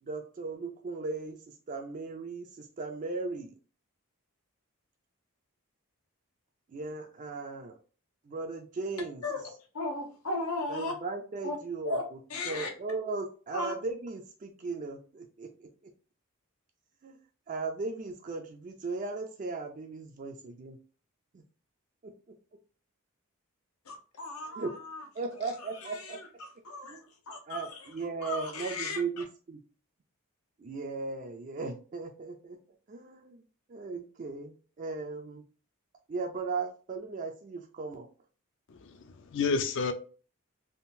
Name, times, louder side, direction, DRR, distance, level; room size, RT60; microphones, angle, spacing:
voice 1, 0.0-3.5 6.7-7.8 8.2-9.2 10.7-12.2 12.4-15.9 17.0-17.2 17.5-20.8 21.3-21.4 22.0-22.1 24.6-24.7 25.1-26.2 26.8-27.1 27.5-29.6 30.6-32.6 32.9-33.4 33.7-35.4 36.1-38.1, right 4 dB, 35° right, 0.3 m, -37 dB
voice 2, 9.7-10.9 11.4-11.6 11.8-12.0 12.3-12.7 13.5-13.7 23.9-25.0 25.9-27.0 27.3-27.7 28.2-29.0, left 2 dB, 90° left, 0.9 m, -35 dB
voice 3, 38.7-39.9, left 5 dB, 55° left, 0.4 m, -30 dB
3.6 x 2.4 x 2.6 m
head